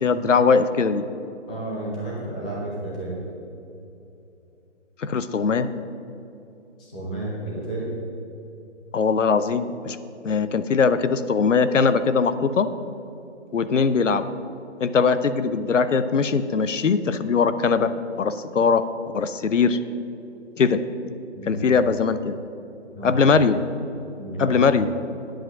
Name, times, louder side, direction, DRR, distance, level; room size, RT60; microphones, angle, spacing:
voice 1, 0.0-1.0 5.0-5.7 8.9-10.0 10.2-12.7 13.5-14.2 14.8-18.8 19.1-19.8 20.6-20.8 21.4-22.4 23.0-23.6 24.4-24.9, left 5 dB, 85° left, 12 dB, 0.8 m, -21 dB
voice 2, 1.5-3.2 6.8-7.9 21.3-21.8 22.9-23.2 24.2-24.7, right 1 dB, 5° left, -5 dB, 0.6 m, -31 dB
10.5 x 7.8 x 6.2 m, 2.7 s
hypercardioid pair, 165°, 36 cm